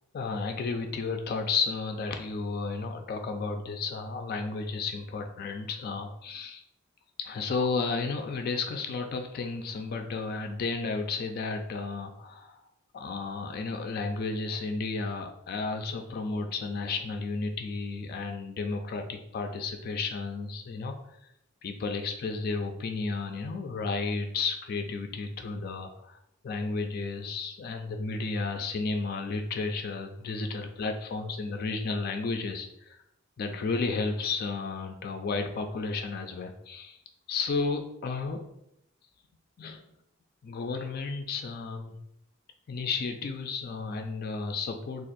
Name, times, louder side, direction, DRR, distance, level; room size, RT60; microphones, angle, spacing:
voice 1, 0.1-6.6 7.2-12.6 12.9-21.0 21.6-26.2 26.4-33.0 33.4-37.0 37.3-38.4 39.6-39.8 40.4-42.0 42.7-45.1, left 4 dB, 45° left, 5 dB, 0.3 m, -32 dB
2.5 x 2.4 x 3.9 m, 0.78 s
head